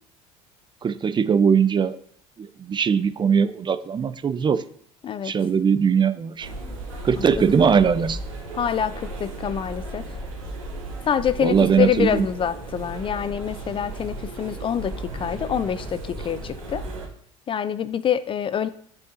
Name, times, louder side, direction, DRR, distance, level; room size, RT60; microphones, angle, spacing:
voice 1, 0.8-2.0 2.4-4.6 5.2-6.5 7.0-8.2 11.4-12.3, right 6 dB, 25° right, 14 dB, 0.5 m, -20 dB
voice 2, 5.0-5.4 7.2-7.7 8.6-10.0 11.1-16.8 17.5-18.7, left 8 dB, 30° left, 15 dB, 0.4 m, -26 dB
sound 1, 6.4-17.1, right 1 dB, 85° right, 2.0 m, -35 dB
8.2 x 5.3 x 2.6 m, 0.63 s
hypercardioid pair, 75°, 17 cm